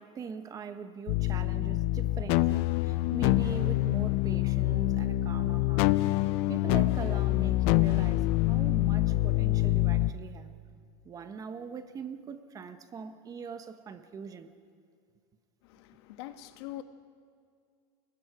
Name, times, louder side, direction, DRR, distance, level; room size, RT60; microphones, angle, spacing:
voice 1, 0.0-6.0 6.5-10.5 11.0-14.6, right 6 dB, 25° right, 1.2 m, -42 dB
sound 1, 1.1-10.1, left 17 dB, 55° left, 0.6 m, -26 dB
voice 2, 15.6-16.8, left 14 dB, 75° left, 1.5 m, -43 dB
30.0 x 22.5 x 5.0 m
supercardioid pair, 140°, 14 cm